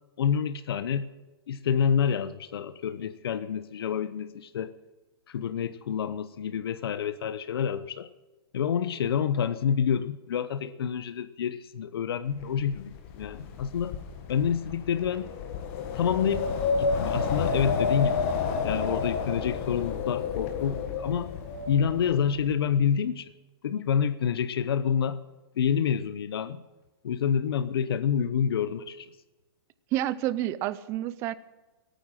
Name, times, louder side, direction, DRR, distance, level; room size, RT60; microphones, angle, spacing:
voice 1, 0.2-1.1 1.5-4.7 5.3-8.1 8.5-14.0 14.3-15.3 15.9-16.5 16.8-18.3 18.6-21.3 21.7-23.3 23.6-25.2 25.6-26.6 27.0-29.1, left 7 dB, 70° left, 14 dB, 0.8 m, -28 dB
Wind, 12.4-22.5, left 5 dB, 35° left, 1.6 m, -30 dB
voice 2, 29.9-31.3, right 14 dB, 20° right, 16 dB, 0.5 m, -29 dB
17.0 x 9.4 x 7.5 m, 1.2 s
hypercardioid pair, 160°, 13 cm